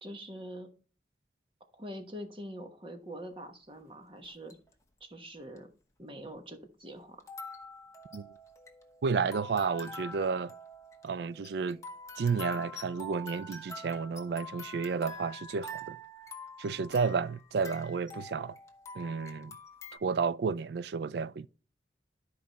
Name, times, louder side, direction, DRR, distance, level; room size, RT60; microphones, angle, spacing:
voice 1, 0.0-0.7 1.7-4.5 5.0-5.7 6.0-7.2, equal, 30° right, 1.1 m, -44 dB
sound 1, 4.2-4.7 5.6-5.7 7.2-20.0, left 1 dB, 15° left, 1.0 m, -46 dB
voice 2, 9.0-10.5 11.0-11.8 12.2-16.0 16.6-18.6 18.9-19.5 20.0-21.5, right 5 dB, 65° right, 0.3 m, -31 dB
12.5 x 4.8 x 4.1 m
head